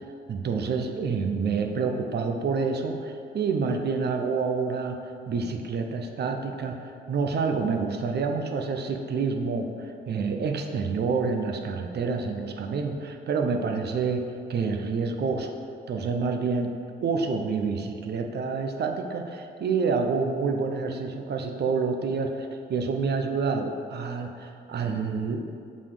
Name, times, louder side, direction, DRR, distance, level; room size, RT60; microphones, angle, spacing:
voice 1, 0.3-5.0 5.3-14.2 14.5-15.5 15.9-16.7 17.0-25.4, right 4 dB, 55° right, 4 dB, 0.9 m, -28 dB
7.4 x 4.2 x 6.6 m, 2.5 s
cardioid pair, 90°, 20 cm